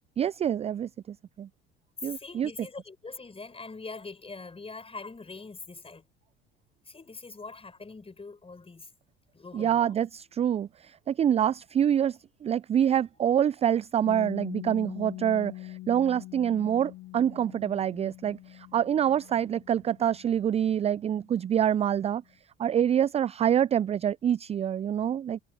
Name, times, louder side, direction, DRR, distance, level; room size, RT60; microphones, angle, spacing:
voice 1, 0.2-1.5 2.0-2.5 9.5-22.2 22.6-25.4, right 9 dB, 20° right, 0.4 m, -26 dB
voice 2, 2.0-6.0 6.9-8.9 9.3-10.0, left 3 dB, 20° left, 7.0 m, -43 dB
Piano, 14.0-21.3, left 17 dB, 50° left, 3.0 m, -44 dB
figure-of-eight pair, 65°, 31 cm